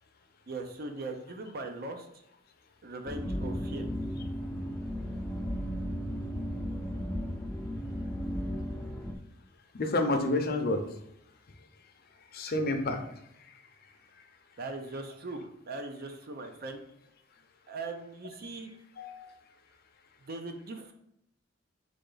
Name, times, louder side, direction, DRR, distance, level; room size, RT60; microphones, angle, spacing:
voice 1, 0.5-2.1 2.8-3.9 14.6-16.8 17.7-18.7 20.3-20.9, right 2 dB, 50° right, 5 dB, 0.6 m, -40 dB
sound 1, 3.1-9.1, equal, 5° left, 0.5 m, -35 dB
voice 2, 9.7-10.8 12.3-13.0 19.0-19.3, left 2 dB, 50° left, 5 dB, 0.6 m, -29 dB
3.9 x 3.4 x 3.9 m, 0.78 s
head